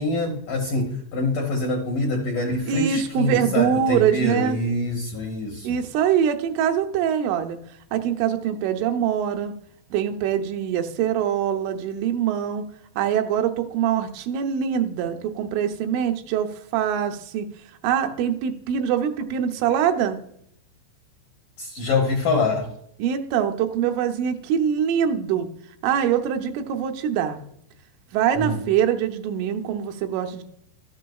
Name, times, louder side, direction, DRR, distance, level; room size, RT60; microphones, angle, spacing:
voice 1, 0.0-5.8 21.6-22.7 28.4-28.6, left 2 dB, 75° left, 0 dB, 1.9 m, -25 dB
voice 2, 2.7-4.6 5.6-7.6 7.9-9.5 9.9-12.6 13.0-17.5 17.8-20.2 23.0-25.5 25.8-27.4 28.1-30.4, right 9 dB, 85° right, 5 dB, 3.3 m, -23 dB
13.0 x 7.3 x 2.3 m, 0.70 s
omnidirectional pair, 5.6 m